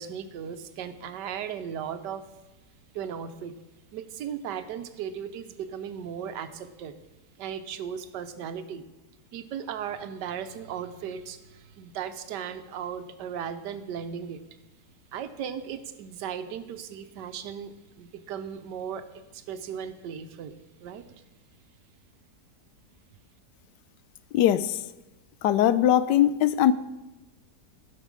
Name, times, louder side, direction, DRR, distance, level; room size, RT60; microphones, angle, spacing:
voice 1, 0.0-2.3 2.9-3.5 3.9-6.9 7.4-8.9 9.3-14.4 15.1-21.0, right 8 dB, 85° right, 1.4 m, -36 dB
voice 2, 24.3-24.8 25.4-26.7, left 11 dB, 90° left, 1.2 m, -21 dB
15.5 x 5.5 x 6.2 m
omnidirectional pair, 1.8 m